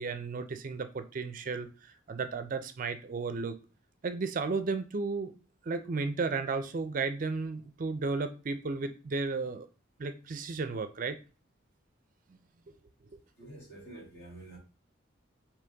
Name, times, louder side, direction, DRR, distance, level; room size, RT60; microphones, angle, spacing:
voice 1, 0.0-3.5 4.0-5.3 5.7-9.7 10.0-11.2, right 4 dB, 45° right, 10 dB, 0.4 m, -34 dB
voice 2, 13.4-14.6, right 2 dB, 55° left, -3 dB, 2.6 m, -48 dB
5.3 x 2.9 x 3.4 m, 0.34 s
head